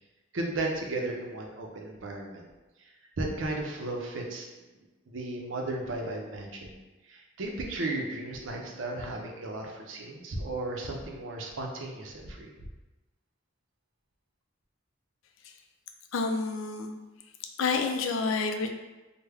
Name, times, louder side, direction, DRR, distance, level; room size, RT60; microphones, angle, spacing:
voice 1, 0.3-2.4 2.8-4.5 5.1-6.8 7.0-12.7, right 2 dB, 80° right, 1 dB, 0.6 m, -35 dB
voice 2, 16.1-16.9 17.6-18.7, left 4 dB, 85° left, 4 dB, 0.4 m, -29 dB
3.4 x 2.1 x 3.3 m, 1.1 s
head